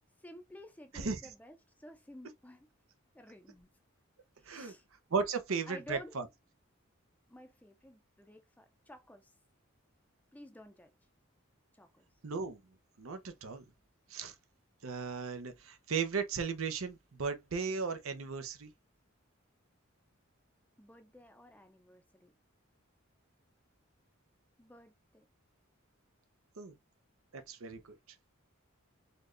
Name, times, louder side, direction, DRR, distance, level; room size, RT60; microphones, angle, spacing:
voice 1, 0.2-2.7 3.1-3.7 4.4-4.8 5.7-6.2 7.3-9.3 10.3-10.9 11.8-12.1 20.8-22.3 24.6-25.2, equal, 10° left, 0.5 m, -52 dB
voice 2, 5.1-6.2 12.2-12.6 13.0-13.6 14.1-14.3 14.8-18.7 26.6-26.8 27.3-27.8, right 5 dB, 80° right, 0.7 m, -36 dB
4.2 x 3.1 x 2.5 m
head